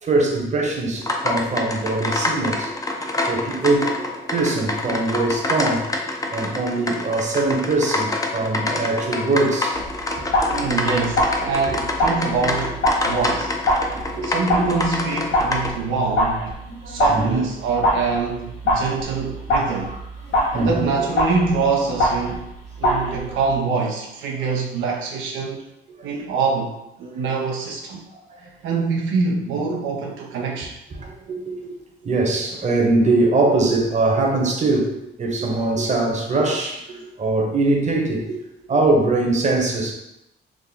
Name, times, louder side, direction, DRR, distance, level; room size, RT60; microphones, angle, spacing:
voice 1, 0.0-2.7 3.2-5.9 6.3-9.8 10.2-10.6 13.8-14.4 16.7-17.4 19.8-20.0 20.3-20.9 22.8-23.4 24.4-24.5 26.0-26.1 28.3-28.4 29.7-29.8 31.0-31.7 32.0-38.4 38.7-39.9, right 2 dB, 35° right, 0 dB, 0.9 m, -22 dB
sound 1, 1.0-15.7, left 2 dB, 15° left, 0.5 m, -26 dB
sound 2, 9.7-23.6, left 1 dB, 80° left, 1.2 m, -24 dB
voice 2, 10.1-13.5 14.2-16.6 16.9-20.0 20.5-22.5 22.8-25.7 26.0-28.1 28.4-30.8, right 4 dB, 85° right, 0 dB, 0.5 m, -25 dB
3.5 x 2.1 x 3.9 m, 0.85 s
cardioid pair, 90°, 20 cm